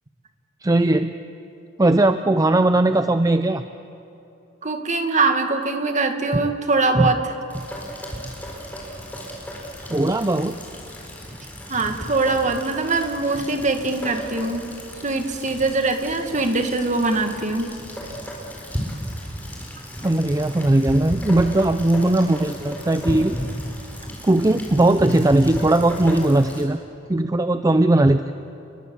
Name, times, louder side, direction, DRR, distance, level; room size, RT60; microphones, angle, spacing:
voice 1, 0.6-1.1 1.8-3.6 6.3-6.4 6.9-7.1 9.9-10.6 20.0-23.4 24.2-26.8 27.1-28.3, right 2 dB, 20° right, 10 dB, 0.5 m, -18 dB
voice 2, 4.6-7.2 11.7-14.7 15.0-17.7, right 3 dB, 40° right, 5 dB, 2.0 m, -22 dB
Rain, 7.5-26.7, equal, 10° left, 4.5 m, -34 dB
30.0 x 22.5 x 7.1 m, 3.0 s
head